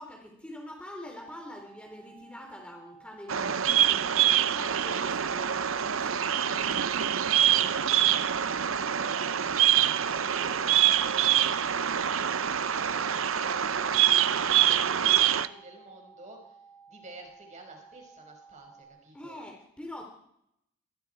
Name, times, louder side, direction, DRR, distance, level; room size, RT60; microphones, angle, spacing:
voice 1, 0.0-6.5 19.1-20.1, left 1 dB, 5° left, 1 dB, 3.2 m, -45 dB
sound 1, 1.0-18.8, right 5 dB, 45° left, 7.9 m, -55 dB
Bird vocalization bird call bird song, 3.3-15.5, right 10 dB, 65° right, 0.7 m, -25 dB
voice 2, 7.5-16.6 16.9-19.4, right 2 dB, 35° right, 2 dB, 6.3 m, -50 dB
27.5 x 21.0 x 4.8 m, 0.78 s
head